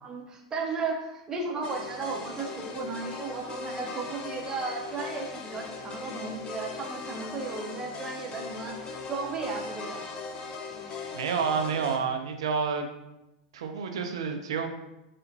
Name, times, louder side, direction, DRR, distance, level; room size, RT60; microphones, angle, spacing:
voice 1, 0.0-10.0, right 4 dB, 20° right, 0 dB, 0.6 m, -35 dB
sound 1, 1.6-12.0, left 4 dB, 30° left, 0.4 m, -39 dB
voice 2, 11.1-12.9 13.5-14.7, right 5 dB, 65° right, 5 dB, 0.4 m, -29 dB
3.8 x 2.1 x 2.5 m, 0.94 s
figure-of-eight pair, 90°, 3 cm